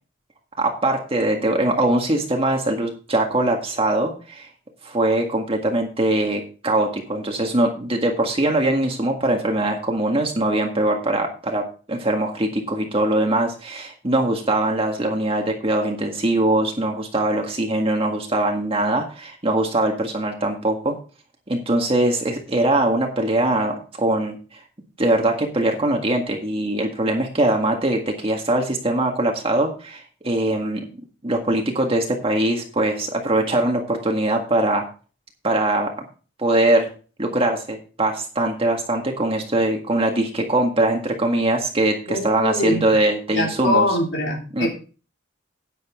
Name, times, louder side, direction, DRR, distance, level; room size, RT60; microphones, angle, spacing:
voice 1, 0.6-4.5 4.8-21.0 21.5-24.4 25.0-30.8 31.2-34.8 35.4-35.9 36.4-36.9 37.2-43.9 44.5-44.7, right 1 dB, 30° right, 2 dB, 1.8 m, -22 dB
voice 2, 42.1-42.9 43.3-44.7, left 1 dB, 75° left, -1 dB, 3.5 m, -23 dB
11.0 x 9.5 x 3.7 m, 0.35 s
head